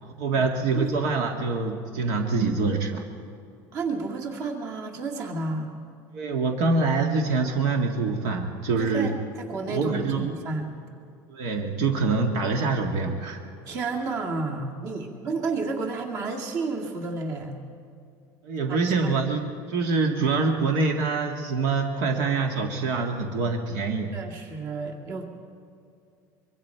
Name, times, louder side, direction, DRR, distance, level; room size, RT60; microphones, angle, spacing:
voice 1, 0.0-3.0 6.1-9.1 9.7-10.3 11.3-13.4 18.4-24.1, right 4 dB, 65° right, 3 dB, 1.8 m, -25 dB
voice 2, 3.7-5.7 8.8-10.7 13.7-17.6 18.7-18.8 19.0-19.1 24.1-25.2, right 3 dB, 40° right, 2 dB, 2.2 m, -31 dB
24.5 x 23.5 x 4.6 m, 2.4 s
cardioid pair, 175°, 9 cm